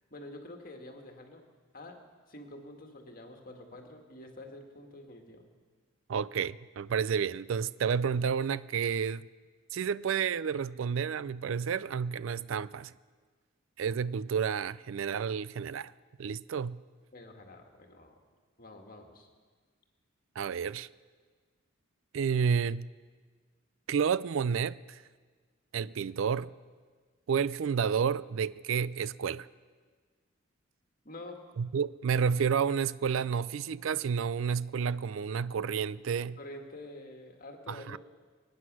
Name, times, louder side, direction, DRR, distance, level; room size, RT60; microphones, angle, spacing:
voice 1, 0.1-1.4 1.7-2.0 2.3-5.4 17.1-18.2 18.6-19.3 31.0-31.4 36.4-38.0, left 1 dB, 45° left, 1.8 m, -47 dB
voice 2, 6.1-9.3 9.7-12.9 13.8-15.9 16.2-16.8 20.4-20.9 22.1-22.9 23.9-25.0 25.7-26.5 27.3-29.5 31.6-36.4 37.7-38.0, right 6 dB, 70° right, 0.4 m, -30 dB
24.0 x 9.6 x 6.2 m
head